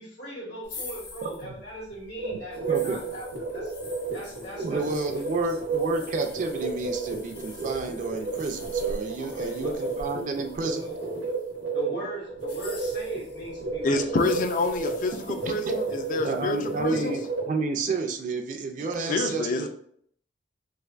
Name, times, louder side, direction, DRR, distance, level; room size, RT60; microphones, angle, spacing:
voice 1, 0.0-3.7 4.1-5.6 9.1-9.8 10.8-11.0 11.7-14.2 19.1-19.7, equal, 80° left, -5 dB, 1.5 m, -40 dB
sound 1, 0.6-11.6 12.3-17.2, left 2 dB, 65° left, 0.8 m, -46 dB
sound 2, 2.2-17.5, right 4 dB, 85° right, 0.7 m, -32 dB
voice 2, 2.7-3.0 4.6-10.9 15.5-15.6 16.2-17.2 17.5-19.7, right 3 dB, 45° right, 4 dB, 0.3 m, -30 dB
voice 3, 13.8-17.2 18.8-19.7, left 2 dB, 45° left, 7 dB, 0.3 m, -28 dB
3.3 x 2.5 x 2.3 m, 0.63 s
head